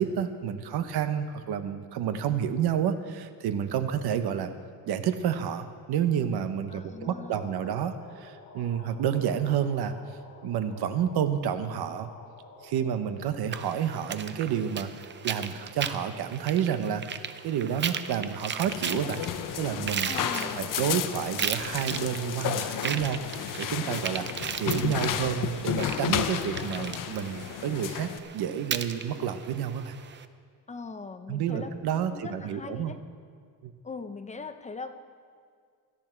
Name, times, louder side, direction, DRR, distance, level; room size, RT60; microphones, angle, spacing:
voice 1, 0.0-4.5 4.9-10.0 10.4-12.1 12.6-14.9 15.2-19.2 19.6-24.3 24.5-30.0 31.3-32.9 33.6-33.7, right 8 dB, 80° right, 9 dB, 1.0 m, -30 dB
voice 2, 6.7-7.5 20.0-21.0 30.7-31.7 32.1-33.0 33.8-34.9, left 4 dB, 20° left, 8 dB, 0.6 m, -40 dB
sound 1, 6.8-14.2, left 3 dB, 40° left, 3.7 m, -51 dB
sound 2, 13.5-30.3, right 7 dB, 30° right, 0.5 m, -37 dB
sound 3, 18.7-28.2, left 9 dB, 55° left, 0.8 m, -32 dB
17.0 x 13.0 x 4.5 m, 2.1 s
cardioid pair, 160°, 38 cm